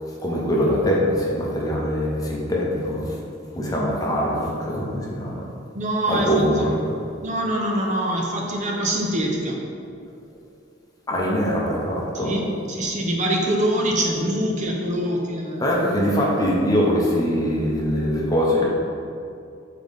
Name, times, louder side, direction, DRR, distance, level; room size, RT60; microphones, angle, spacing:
voice 1, 0.2-3.2 3.5-5.5 6.1-6.8 11.1-12.5 15.6-18.7, equal, 20° left, -3 dB, 0.8 m, -22 dB
voice 2, 5.7-6.6 7.2-9.6 12.1-15.6, right 1 dB, 40° right, -1 dB, 0.6 m, -24 dB
7.2 x 3.8 x 3.5 m, 2.5 s
head